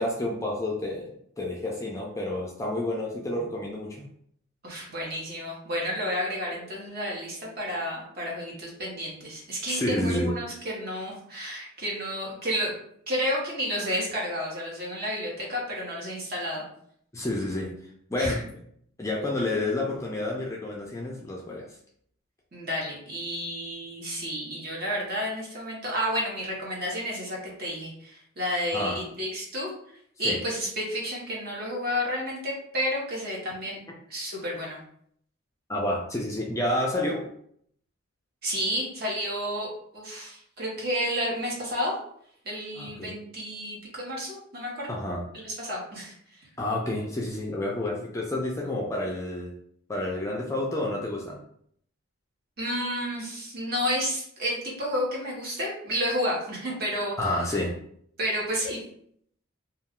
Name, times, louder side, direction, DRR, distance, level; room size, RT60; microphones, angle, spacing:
voice 1, 0.0-4.0 9.7-10.3 17.1-17.7 18.1-18.4 19.0-21.7 28.7-29.0 30.2-30.4 35.7-37.2 42.8-43.2 44.9-45.2 46.6-49.5 49.9-51.4 57.2-57.8, left 1 dB, 15° left, -2 dB, 0.3 m, -29 dB
voice 2, 4.6-12.7 13.1-16.7 18.1-18.4 22.5-33.8 34.1-34.8 38.4-42.0 42.4-44.9 45.3-46.5 52.6-57.4 58.2-58.8, equal, 45° right, -3 dB, 0.9 m, -31 dB
2.3 x 2.3 x 3.5 m, 0.67 s
head